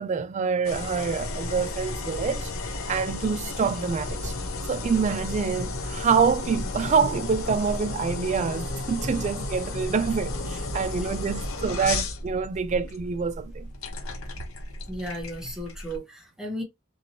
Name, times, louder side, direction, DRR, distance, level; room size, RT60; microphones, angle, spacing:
voice 1, 0.0-2.5 2.9-4.3 4.7-13.7, right 5 dB, 35° right, 0.3 m, -26 dB
sound 1, 0.6-16.0, left 2 dB, 80° left, 0.6 m, -33 dB
voice 2, 14.9-16.6, equal, 5° right, 0.9 m, -35 dB
2.8 x 2.7 x 2.8 m
head